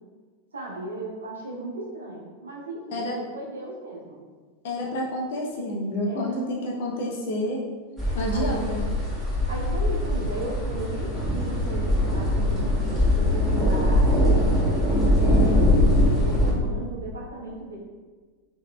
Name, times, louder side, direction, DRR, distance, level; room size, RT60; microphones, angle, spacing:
voice 1, 0.5-4.2 6.0-6.4 8.3-8.8 9.5-14.4 15.1-17.8, right 2 dB, 75° right, -4 dB, 0.8 m, -36 dB
voice 2, 4.6-7.6 8.1-8.8, left 1 dB, 55° left, -2 dB, 0.5 m, -29 dB
sound 1, 8.0-16.5, left 1 dB, 5° left, 1.4 m, -22 dB
3.7 x 2.9 x 2.2 m, 1.5 s
figure-of-eight pair, 90°, 0 cm